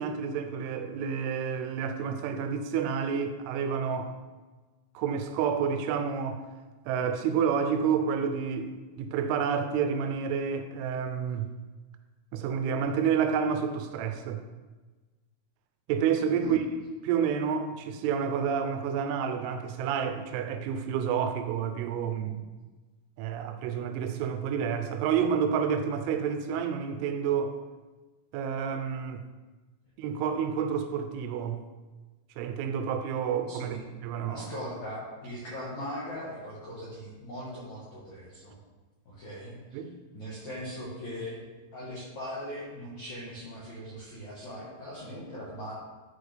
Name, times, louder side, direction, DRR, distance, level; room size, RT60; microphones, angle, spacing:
voice 1, 0.0-4.1 5.0-6.4 6.9-11.5 12.3-14.4 15.9-16.6 17.0-22.4 23.2-27.6 28.3-29.2 30.0-31.6 32.4-33.8 34.0-34.5 39.7-39.9, right 7 dB, 85° right, 3.0 m, -29 dB
voice 2, 33.5-33.8 34.3-38.6 39.0-39.8 40.1-41.4 41.7-45.7, equal, 85° left, 1.6 m, -40 dB
12.0 x 4.3 x 3.3 m
omnidirectional pair, 5.7 m